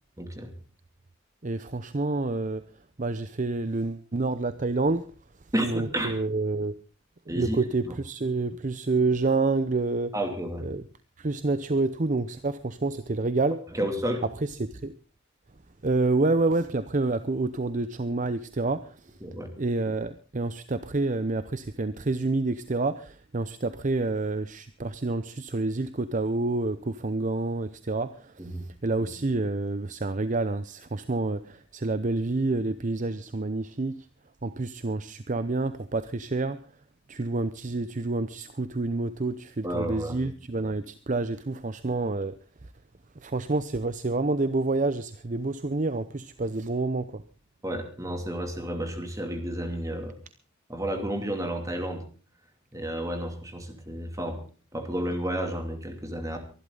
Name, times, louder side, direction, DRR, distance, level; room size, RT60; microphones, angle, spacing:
voice 1, 0.2-0.5 5.5-6.2 7.3-7.6 7.8-7.9 10.1-10.7 13.7-14.2 19.2-19.6 28.4-28.7 39.6-40.2 47.6-50.2 50.7-52.0 52.7-54.4 54.7-56.4, right 1 dB, 15° right, 6 dB, 2.6 m, -31 dB
voice 2, 1.4-2.6 3.0-5.1 5.6-6.7 7.3-10.1 10.6-10.8 11.2-13.6 14.4-14.9 15.8-19.0 19.6-28.6 28.8-34.1 34.4-36.6 37.1-42.4 43.2-47.2, right 3 dB, 40° right, 12 dB, 0.7 m, -28 dB
24.0 x 11.5 x 3.9 m, 0.37 s
head